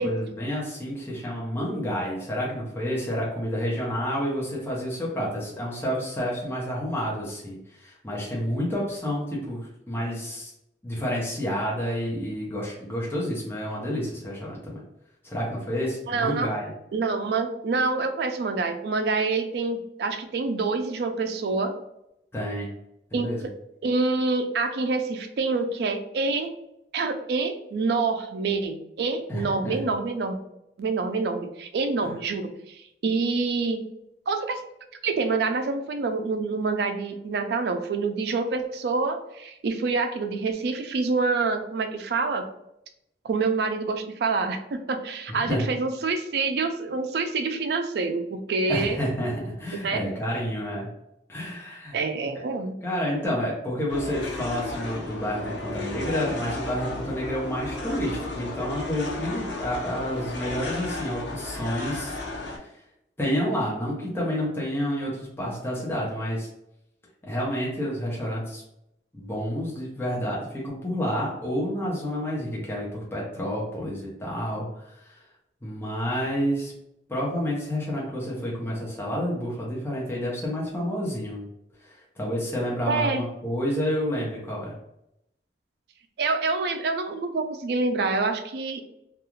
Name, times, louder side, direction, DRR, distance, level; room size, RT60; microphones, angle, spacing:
voice 1, 0.0-10.5 10.8-14.8 15.2-16.7 22.3-22.7 23.1-23.5 29.3-29.8 32.0-32.1 45.3-45.6 48.7-50.9 51.3-52.0 52.8-62.2 62.5-62.8 63.2-66.5 67.2-68.6 69.1-75.2 75.6-76.7 77.1-81.5 81.8-84.7, equal, 15° left, -5 dB, 0.6 m, -29 dB
voice 2, 16.1-16.5 16.9-21.7 23.1-23.5 23.8-26.5 26.9-30.4 30.8-33.8 34.3-34.6 35.0-42.4 43.2-49.0 49.8-50.0 51.9-52.7 82.9-83.2 86.2-88.8, right 3 dB, 60° right, 7 dB, 0.3 m, -27 dB
sound 1, 53.9-62.6, left 2 dB, 80° left, 0.6 m, -34 dB
2.3 x 2.3 x 3.0 m, 0.80 s
head